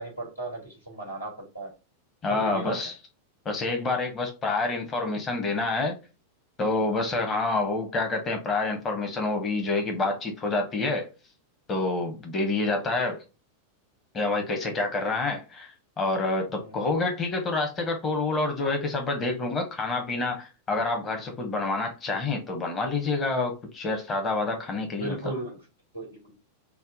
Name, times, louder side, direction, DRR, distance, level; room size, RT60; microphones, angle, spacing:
voice 1, 0.0-1.7 2.3-2.8 16.6-16.9 25.0-25.6 25.9-26.3, right 2 dB, 85° left, 1.7 m, -36 dB
voice 2, 2.2-2.9 3.4-5.9 6.6-11.1 11.7-13.2 14.1-25.2, left 3 dB, 25° left, 0.8 m, -28 dB
3.4 x 2.1 x 3.9 m
figure-of-eight pair, 90°, 0 cm